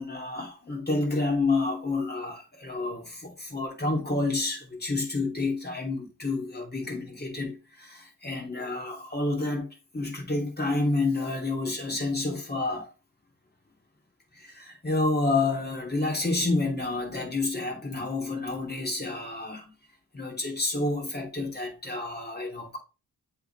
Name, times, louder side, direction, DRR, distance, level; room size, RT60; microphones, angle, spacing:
voice 1, 0.0-12.9 14.3-19.7 20.1-22.8, left 2 dB, 25° left, 2.9 m, -29 dB
7.8 x 4.0 x 3.3 m
cardioid pair, 70°, 42 cm